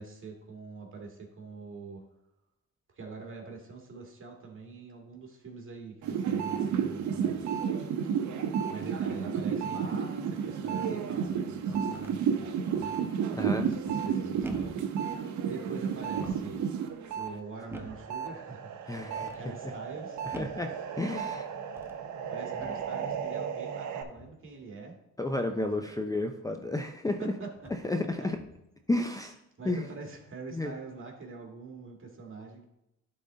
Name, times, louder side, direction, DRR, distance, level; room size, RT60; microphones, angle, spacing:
voice 1, 0.0-2.0 3.0-7.6 8.0-8.3 8.7-13.0 13.5-16.6 17.1-18.7 19.1-20.2 21.8-21.9 22.3-25.0 25.6-25.9 27.2-27.7 28.2-28.3 29.6-32.7, right 4 dB, 45° right, 1 dB, 2.1 m, -44 dB
sound 1, 6.0-17.3 17.7-24.0, right 7 dB, 70° right, 0.9 m, -32 dB
sound 2, 11.7-12.2 13.7-14.1 14.4-14.9 16.0-16.6 17.7-18.1 18.9-19.4 20.3-20.7 21.7-22.0 22.6-22.9 24.1-24.5 26.6-26.7 27.5-27.9 28.3-28.7, right 2 dB, 10° right, 0.9 m, -46 dB
voice 2, 13.4-13.7 18.9-19.5 20.3-21.5 25.2-27.3 27.8-28.4 28.9-29.3 29.6-29.8 30.5-30.7, left 2 dB, 10° left, 5 dB, 0.5 m, -32 dB
11.0 x 3.9 x 3.8 m, 0.87 s
cardioid pair, 90°, 30 cm